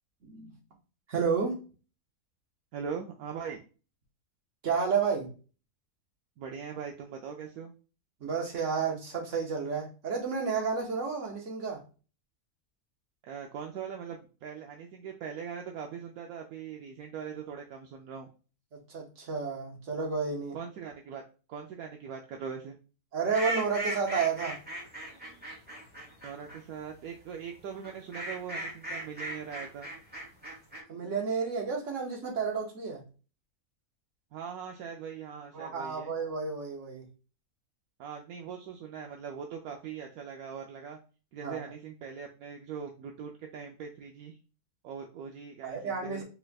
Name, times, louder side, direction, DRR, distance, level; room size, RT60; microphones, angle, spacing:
voice 1, 0.2-0.5 1.1-1.5 4.6-5.3 8.2-11.8 18.7-20.6 23.1-24.6 30.9-33.0 35.5-37.1 41.4-41.6 45.6-46.2, right 5 dB, 55° right, 1 dB, 1.4 m, -31 dB
voice 2, 2.7-3.6 6.4-7.7 13.2-18.3 20.5-21.2 21.5-22.8 26.2-29.9 34.3-36.1 38.0-41.0 41.3-44.4 44.8-46.2, right 7 dB, 75° right, 2 dB, 1.0 m, -41 dB
sound 1, 23.3-26.6 27.8-30.8, right 1 dB, 5° right, 1.3 m, -37 dB
4.3 x 3.5 x 2.3 m, 0.34 s
omnidirectional pair, 1.6 m